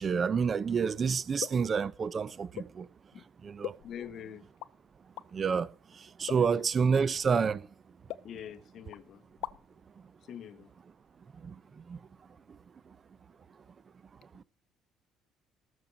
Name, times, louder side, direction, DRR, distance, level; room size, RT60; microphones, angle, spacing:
voice 1, 0.0-2.9 3.4-3.7 5.3-7.7 11.3-12.0 12.5-12.6 12.9-13.0 14.3-14.4, right 6 dB, 35° right, 0.8 m, -29 dB
sound 1, 1.4-1.7 2.5-2.8 3.6-4.2 4.6-4.7 5.2-5.3 6.3-6.6 7.3-7.5 8.1-8.7 8.9-9.0 9.3-9.8, left 14 dB, 85° left, 0.7 m, -41 dB
voice 2, 3.8-4.5 6.3-6.7 8.2-9.2 10.3-10.7, left 9 dB, 55° left, 1.4 m, -44 dB
19.0 x 7.0 x 4.1 m
cardioid pair, 115°, 0 cm